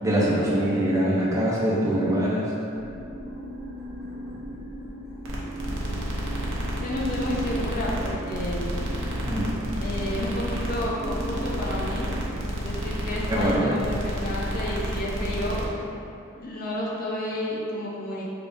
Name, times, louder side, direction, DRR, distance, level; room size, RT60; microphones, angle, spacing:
voice 1, 0.0-2.5 9.2-9.5 13.3-13.7, right 1 dB, 15° right, -5 dB, 0.4 m, -23 dB
sound 1, 2.7-11.8, right 1 dB, 80° left, 1.4 m, -37 dB
sound 2, 5.2-15.7, equal, 65° right, 0.6 m, -30 dB
voice 2, 6.8-8.7 9.8-12.1 12.6-15.6 16.4-18.3, left 1 dB, 45° left, -4 dB, 0.6 m, -31 dB
3.8 x 2.3 x 3.6 m, 2.7 s
head